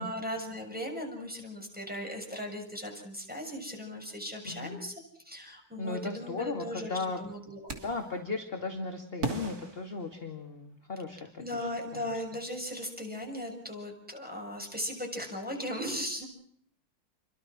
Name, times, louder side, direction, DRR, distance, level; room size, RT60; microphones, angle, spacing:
voice 1, 0.0-7.7 11.4-16.3, equal, 5° right, 1 dB, 6.7 m, -38 dB
voice 2, 4.4-4.8 5.8-7.2 7.7-11.6 11.9-12.2, left 3 dB, 25° left, 4 dB, 2.4 m, -36 dB
sound 1, 7.7-8.2 9.2-10.7, right 3 dB, 45° right, 3.4 m, -38 dB
28.5 x 24.0 x 6.2 m, 0.67 s
omnidirectional pair, 2.3 m